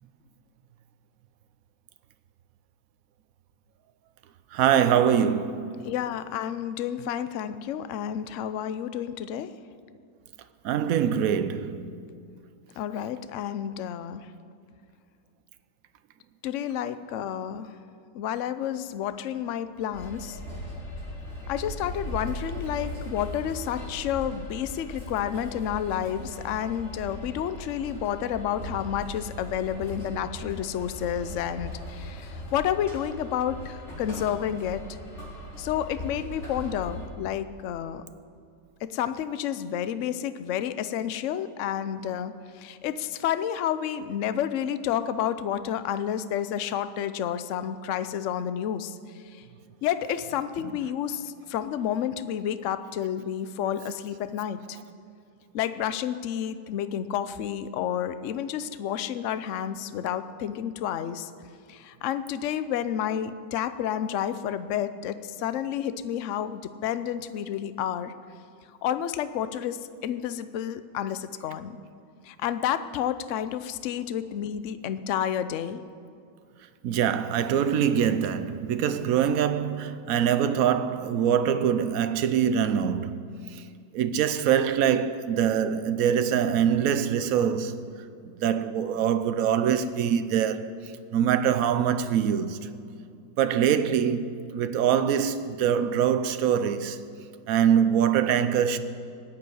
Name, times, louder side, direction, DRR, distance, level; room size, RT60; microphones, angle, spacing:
voice 1, 4.5-5.9 10.6-12.0 76.8-83.2 83.5-83.6 83.9-87.8 88.4-92.7 93.4-97.0 97.5-98.8, right 8 dB, 65° right, 1.0 m, -24 dB
voice 2, 5.8-9.5 12.8-14.3 16.4-17.7 18.1-20.4 21.5-35.0 35.6-38.0 38.8-49.4 49.8-54.8 55.5-61.3 61.7-68.1 68.8-71.8 72.2-75.8, left 10 dB, 65° left, 0.7 m, -30 dB
sound 1, 19.9-37.1, left 1 dB, 40° left, 4.1 m, -39 dB
19.0 x 7.0 x 9.5 m
omnidirectional pair, 2.0 m